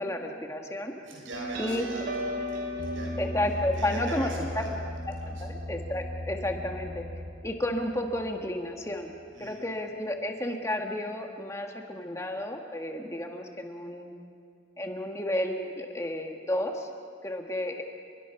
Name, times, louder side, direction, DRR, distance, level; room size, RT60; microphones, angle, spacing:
voice 1, 0.0-0.9 1.6-1.9 3.2-4.6 5.2-7.0 7.4-9.1 9.4-14.1 14.8-16.9 17.2-17.8, left 1 dB, 15° left, 2 dB, 1.7 m, -32 dB
voice 2, 1.0-3.2 3.7-4.7 5.2-5.4 9.3-9.7, right 2 dB, 85° right, -1 dB, 5.9 m, -41 dB
sound 1, 1.3-8.5, equal, 55° right, 3.1 m, -36 dB
29.5 x 22.5 x 6.0 m, 2.2 s
head